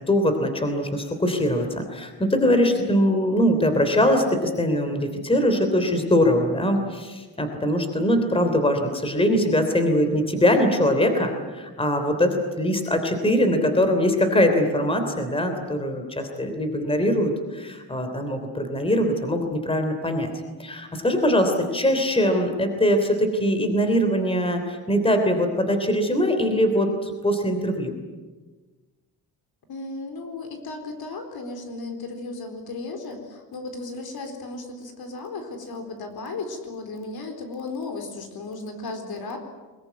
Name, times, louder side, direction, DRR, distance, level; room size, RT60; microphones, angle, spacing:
voice 1, 0.1-20.3 20.6-27.9, equal, 15° left, 6 dB, 3.2 m, -22 dB
voice 2, 29.7-39.4, left 3 dB, 65° left, 5 dB, 4.2 m, -35 dB
23.0 x 21.5 x 9.5 m, 1.3 s
wide cardioid pair, 155°, 39 cm